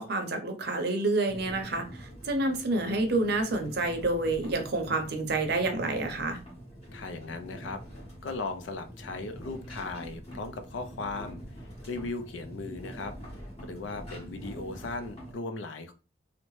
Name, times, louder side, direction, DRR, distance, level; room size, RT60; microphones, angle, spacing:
voice 1, 0.0-6.4, right 2 dB, 60° right, 5 dB, 0.6 m, -28 dB
sound 1, 1.3-15.3, equal, 35° left, 1.4 m, -45 dB
voice 2, 6.9-7.8 8.2-11.4 11.8-13.4 13.6-15.9, left 3 dB, 80° left, 8 dB, 0.4 m, -37 dB
2.7 x 2.1 x 3.0 m, 0.34 s
head